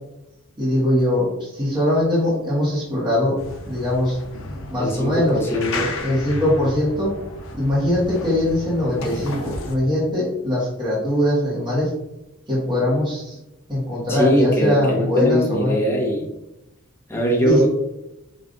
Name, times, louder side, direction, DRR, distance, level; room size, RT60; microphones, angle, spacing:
voice 1, 0.6-3.4 3.6-4.2 4.7-5.4 6.0-7.1 7.5-11.9 12.5-13.4 13.7-15.7 17.4-17.7, left 1 dB, 20° right, -6 dB, 1.0 m, -21 dB
sound 1, 3.4-9.8, left 2 dB, 70° left, 0.5 m, -33 dB
voice 2, 4.8-5.9 14.1-16.3 17.1-17.7, equal, 10° left, -3 dB, 0.8 m, -21 dB
5.1 x 2.4 x 2.5 m, 0.89 s
head